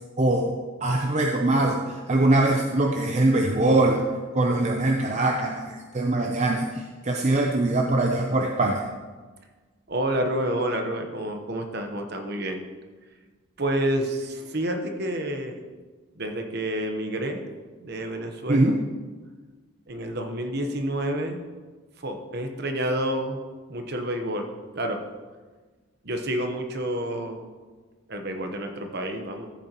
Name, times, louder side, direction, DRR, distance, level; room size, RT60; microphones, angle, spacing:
voice 1, 0.2-8.9 18.5-18.8, right 2 dB, 35° right, 2 dB, 0.6 m, -23 dB
voice 2, 9.9-12.6 13.6-15.6 16.2-17.4 17.8-18.7 19.9-21.4 22.0-23.4 23.7-24.5 24.7-25.0 26.0-27.5 28.1-29.5, right 1 dB, 50° right, 5 dB, 1.0 m, -29 dB
14.5 x 8.4 x 3.0 m, 1.4 s
head